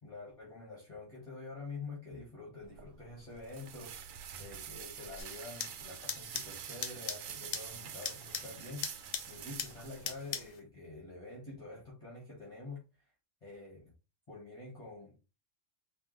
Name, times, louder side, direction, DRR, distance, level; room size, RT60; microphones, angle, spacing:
voice 1, 0.0-4.0 4.4-8.9 9.3-12.8 13.4-13.9 14.3-15.2, left 3 dB, 25° left, 2.0 m, -47 dB
sound 1, 2.6-10.5, right 8 dB, 85° right, 1.0 m, -47 dB
sound 2, 5.2-10.6, left 7 dB, 65° left, 0.9 m, -42 dB
5.2 x 2.6 x 3.3 m
omnidirectional pair, 1.4 m